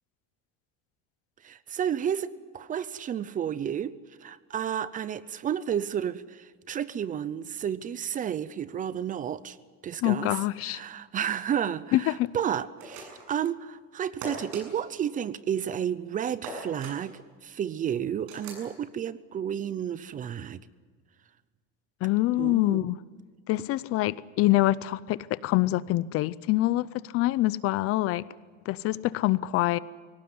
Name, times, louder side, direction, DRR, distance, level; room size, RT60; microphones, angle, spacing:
voice 1, 1.4-2.3 2.5-3.9 4.2-9.6 9.8-10.4 10.6-20.6 22.4-22.9, right 9 dB, 30° right, 17 dB, 0.6 m, -31 dB
voice 2, 10.0-10.8 11.9-12.3 22.0-23.0 23.5-28.2 28.7-29.8, left 17 dB, 50° left, 19 dB, 0.6 m, -25 dB
sound 1, 12.8-13.4 14.2-14.6 16.4-17.0 18.3-18.7, right 3 dB, 80° right, 7.7 m, -39 dB
22.5 x 18.0 x 9.5 m, 1.5 s
cardioid pair, 160°, 29 cm